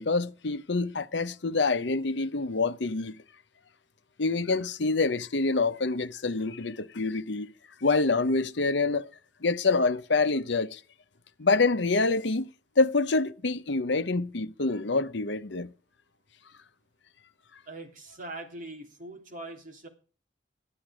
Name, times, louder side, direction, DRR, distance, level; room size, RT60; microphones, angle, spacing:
voice 1, 0.0-3.2 4.2-7.5 7.8-9.1 9.4-10.8 11.4-12.5 12.8-15.7, left 3 dB, 70° left, 0.9 m, -26 dB
voice 2, 17.6-19.9, right 2 dB, 45° right, 3.3 m, -42 dB
14.0 x 11.0 x 5.0 m
head